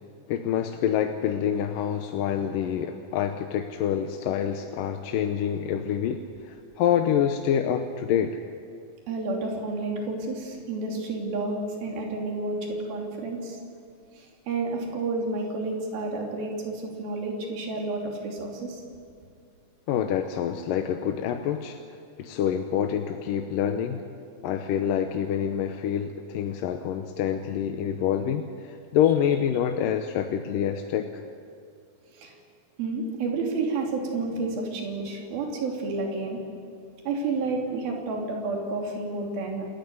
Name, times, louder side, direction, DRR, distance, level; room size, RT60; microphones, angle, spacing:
voice 1, 0.3-8.4 19.9-21.8 22.2-24.0 24.4-31.2, left 9 dB, 75° left, 6 dB, 2.4 m, -27 dB
voice 2, 9.1-13.6 14.1-18.8 32.1-32.3 32.8-36.4 37.0-39.7, right 3 dB, 80° right, 0 dB, 4.8 m, -30 dB
28.0 x 15.0 x 9.6 m, 2.4 s
omnidirectional pair, 4.2 m